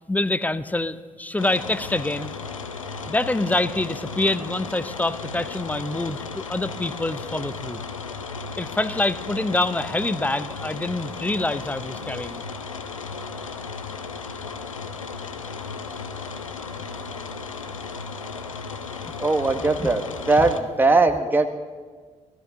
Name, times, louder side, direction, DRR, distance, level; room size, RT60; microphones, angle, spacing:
voice 1, 0.1-2.4 3.1-7.8 8.6-12.4 19.8-19.9 20.4-20.5, left 2 dB, 10° left, 16 dB, 0.6 m, -26 dB
sound 1, 1.4-20.6, left 4 dB, 85° left, 0.6 m, -35 dB
voice 2, 19.2-21.5, right 3 dB, 10° right, 6 dB, 1.2 m, -20 dB
27.0 x 16.0 x 2.8 m, 1.5 s
figure-of-eight pair, 45°, 16 cm